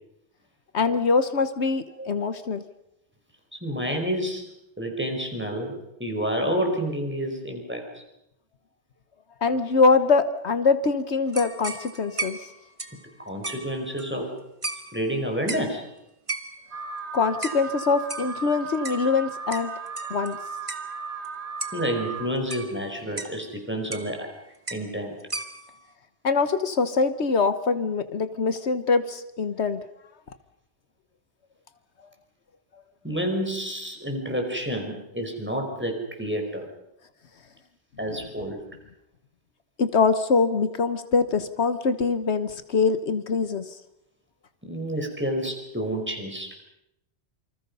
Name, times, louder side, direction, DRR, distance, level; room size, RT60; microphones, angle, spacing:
voice 1, 0.7-2.6 9.4-12.4 17.1-19.7 20.1-20.4 26.2-29.8 39.8-43.7, left 4 dB, 75° left, 11 dB, 1.4 m, -23 dB
voice 2, 3.5-4.4 4.8-8.0 13.2-14.3 14.9-15.8 21.7-24.3 24.7-25.2 33.0-36.6 38.0-38.6 44.6-46.5, equal, 10° right, 2 dB, 5.2 m, -29 dB
sound 1, 11.3-14.3 14.6-15.1 15.5-15.8 16.3-16.8 17.4-17.7 18.1-20.4 20.7-20.9 21.2-21.3 21.6-21.9 22.5-23.4 23.9-24.3 24.7-24.9 25.2-25.8, right 3 dB, 30° right, 1.7 m, -36 dB
Alarm, 16.7-22.3, right 5 dB, 75° right, 2.3 m, -36 dB
27.5 x 26.0 x 5.6 m, 0.84 s
omnidirectional pair, 1.1 m